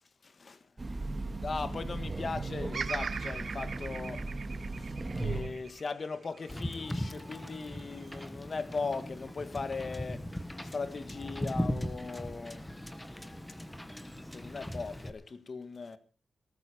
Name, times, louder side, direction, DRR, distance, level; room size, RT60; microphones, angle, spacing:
voice 1, 0.2-0.6 1.4-4.3 4.8-10.2 10.6-12.6 14.3-16.0, left 4 dB, 35° left, 1.5 m, -38 dB
Train, 0.8-5.7, right 2 dB, 20° right, 2.2 m, -37 dB
Bird vocalization bird call bird song, 2.7-6.9 7.5-8.2, right 5 dB, 45° right, 0.7 m, -40 dB
Wind / Boat Water vehicle, 6.5-15.1, equal, 10° left, 1.4 m, -39 dB
19.0 x 14.0 x 5.0 m
wide cardioid pair, 155°, 0 cm